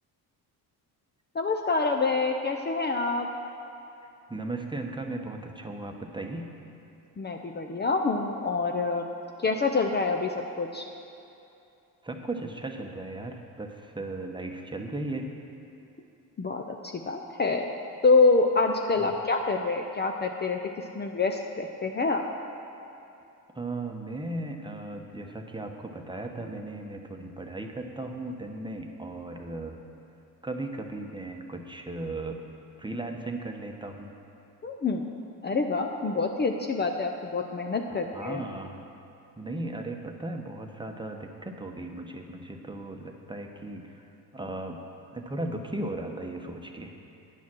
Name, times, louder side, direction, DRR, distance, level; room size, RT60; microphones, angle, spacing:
voice 1, 1.3-3.3 7.2-9.0 9.4-10.8 16.4-16.6 16.9-17.7 18.0-20.6 20.9-22.2 34.6-35.0 35.4-38.4, left 3 dB, 25° left, 3 dB, 0.6 m, -26 dB
voice 2, 4.3-6.5 12.0-15.3 19.0-19.1 23.5-29.8 30.4-32.4 32.8-34.1 38.1-38.8 39.4-44.1 44.3-44.8 45.1-46.9, right 2 dB, 10° right, 3 dB, 0.9 m, -36 dB
9.9 x 7.2 x 6.1 m, 2.7 s
cardioid pair, 85°, 39 cm